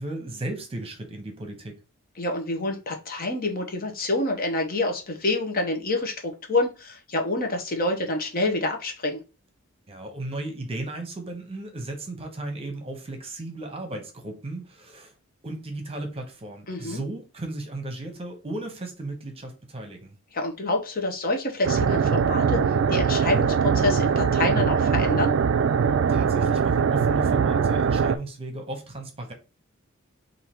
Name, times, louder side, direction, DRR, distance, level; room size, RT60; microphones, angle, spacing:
voice 1, 0.0-1.7 9.9-15.1 15.4-20.2 26.1-29.3, right 2 dB, 30° right, 1.0 m, -35 dB
voice 2, 2.2-9.2 16.7-17.0 20.3-22.6 22.9-25.3, left 2 dB, 45° left, 0.9 m, -27 dB
sound 1, 21.6-28.2, right 6 dB, 65° right, 0.3 m, -22 dB
3.7 x 2.7 x 4.3 m
head